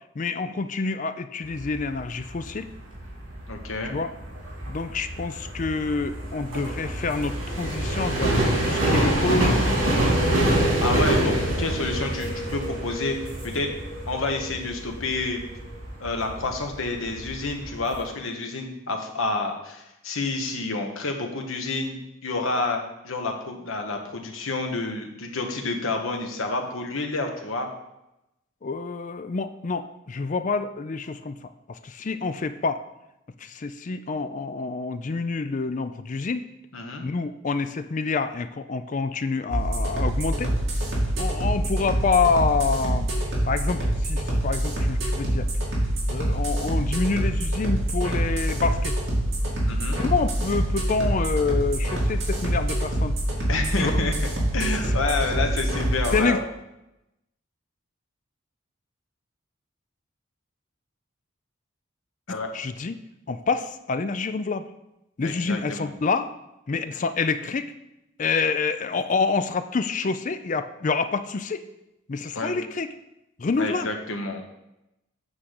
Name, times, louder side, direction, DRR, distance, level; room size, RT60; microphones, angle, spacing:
voice 1, 0.2-2.7 3.9-4.1 4.7-9.8 28.6-31.4 31.7-32.8 33.4-36.5 37.0-40.5 41.2-43.1 43.4-45.5 46.1-49.0 49.9-53.2 53.8-53.9 56.1-56.4 62.3-63.0 63.3-64.6 65.2-66.3 66.7-67.7 68.2-71.6 72.1-72.9 73.4-73.9, left 4 dB, 35° left, 11 dB, 0.4 m, -27 dB
sound 1, 1.4-18.0, right 1 dB, 85° right, 3.2 m, -26 dB
voice 2, 3.5-4.0 10.8-13.2 13.4-13.7 14.1-15.4 16.0-22.0 22.2-27.7 36.7-37.1 49.7-50.0 53.5-54.1 54.5-56.4 62.3-62.5 65.2-65.9 72.3-72.6 73.6-74.4, left 3 dB, 80° left, 3 dB, 1.2 m, -29 dB
sound 2, 39.5-56.2, right 1 dB, 65° right, 2.4 m, -25 dB
8.5 x 3.8 x 6.5 m, 0.90 s
head